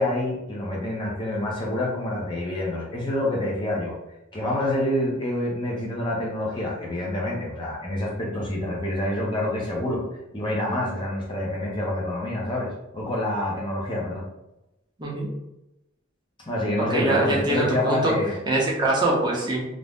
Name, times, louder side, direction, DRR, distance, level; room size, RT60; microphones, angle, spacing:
voice 1, 0.0-3.9 4.3-10.0 10.3-14.3 16.5-18.4, left 1 dB, 20° left, -3 dB, 0.6 m, -27 dB
voice 2, 16.9-18.1 18.5-19.7, right 2 dB, 20° right, -4 dB, 0.6 m, -23 dB
2.6 x 2.1 x 3.3 m, 0.90 s
head